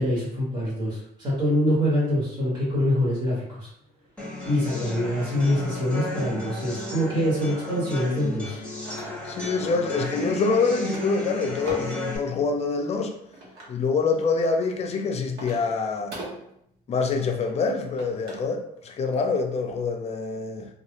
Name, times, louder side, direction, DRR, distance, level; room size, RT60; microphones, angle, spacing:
voice 1, 0.0-3.7 4.4-8.6, equal, 25° right, -9 dB, 1.5 m, -25 dB
sound 1, 4.2-12.2, left 1 dB, 5° left, 1.0 m, -34 dB
sound 2, 7.9-9.5 9.8-10.4 10.7-12.1 12.8-13.8 14.4-18.5 18.8-19.1, right 1 dB, 75° right, 1.0 m, -42 dB
voice 2, 9.2-13.2 13.7-16.2 16.9-20.7, left 4 dB, 40° left, 4 dB, 0.5 m, -26 dB
2.5 x 2.4 x 2.9 m, 0.73 s
cardioid pair, 110°, 17 cm